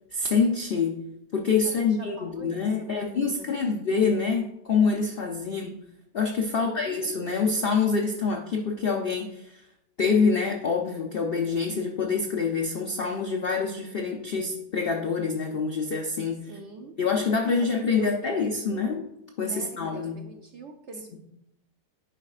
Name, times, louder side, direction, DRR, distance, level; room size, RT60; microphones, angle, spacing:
voice 1, 0.1-0.9 1.3-5.8 6.1-9.6 10.0-16.5 17.0-19.0 19.4-20.1 21.1-21.2, left 5 dB, 70° left, 1 dB, 0.5 m, -26 dB
voice 2, 1.6-3.5 5.4-5.6 6.6-7.0 16.5-17.0 17.6-18.8 19.5-21.2, right 3 dB, 65° right, 3 dB, 0.7 m, -44 dB
10.0 x 4.2 x 2.4 m, 0.82 s
omnidirectional pair, 1.7 m